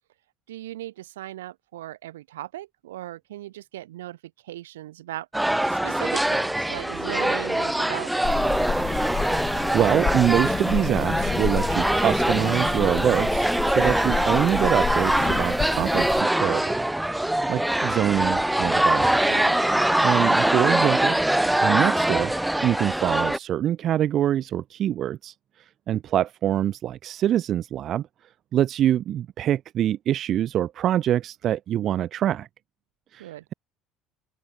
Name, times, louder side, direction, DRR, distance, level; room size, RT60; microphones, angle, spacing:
voice 1, 0.5-4.2 4.4-5.3 5.7-8.2 19.3-19.6 33.2-33.4, right 14 dB, 90° right, 4.7 m, -37 dB
sound 1, 5.3-23.4, right 1 dB, 5° right, 3.1 m, -23 dB
sound 2, 8.2-16.2, left 7 dB, 40° left, 3.7 m, -31 dB
voice 2, 9.3-16.8 17.2-19.2 20.0-21.2 21.6-22.3 22.6-25.3 25.9-28.1 28.5-32.5 33.1-33.5, right 11 dB, 55° right, 0.8 m, -25 dB
open air
hypercardioid pair, 75°, 0 cm